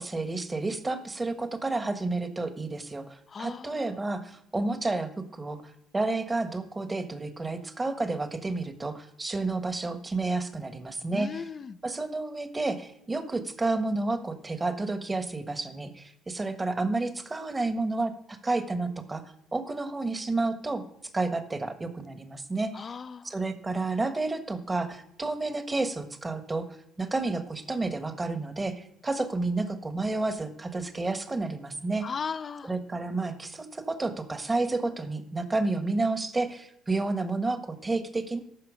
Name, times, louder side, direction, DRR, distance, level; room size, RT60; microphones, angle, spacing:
voice 1, 0.0-5.6 5.9-11.4 11.8-19.2 19.5-20.8 21.1-22.7 23.2-26.7 27.0-32.1 32.6-38.4, right 3 dB, 25° right, 1.4 m, -30 dB
voice 2, 3.3-3.9 11.1-11.8 22.7-23.3 32.0-32.7, left 6 dB, 45° left, 0.6 m, -37 dB
14.0 x 5.8 x 5.0 m
hypercardioid pair, 60°, 0 cm